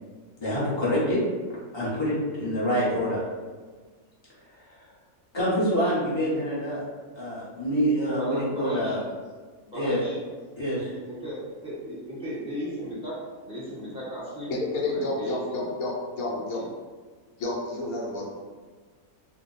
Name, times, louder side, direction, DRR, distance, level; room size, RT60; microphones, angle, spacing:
voice 1, 0.4-1.2 1.7-3.2 5.3-6.8 7.1-9.0 9.7-10.0 10.6-10.9, equal, 25° left, -8 dB, 0.7 m, -26 dB
voice 2, 8.2-9.0 9.7-10.1 10.8-13.1 13.4-14.6 14.8-15.7 16.3-16.7, equal, 5° right, -8 dB, 0.8 m, -36 dB
voice 3, 14.5-16.6 17.4-18.3, left 2 dB, 80° left, -3 dB, 1.2 m, -30 dB
2.6 x 2.1 x 3.9 m, 1.4 s
omnidirectional pair, 1.5 m